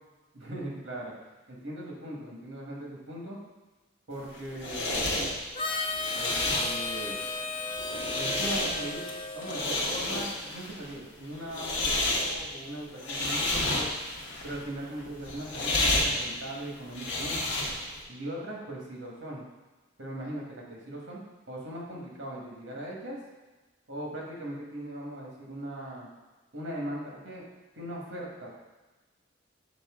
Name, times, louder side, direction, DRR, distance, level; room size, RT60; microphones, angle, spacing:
voice 1, 0.3-1.1 1.5-3.4 4.1-5.2 6.1-7.2 8.1-9.1 9.3-13.9 14.4-17.4 18.1-19.5 20.0-21.2 21.5-23.2 23.9-26.1 26.5-27.5 27.7-28.5, right 1 dB, 70° right, -3 dB, 1.6 m, -39 dB
sound 1, 4.2-18.0, left 2 dB, 65° left, 1.0 m, -31 dB
Harmonica, 5.5-10.3, left 3 dB, 30° left, 0.4 m, -35 dB
6.9 x 3.8 x 3.7 m, 1.2 s
head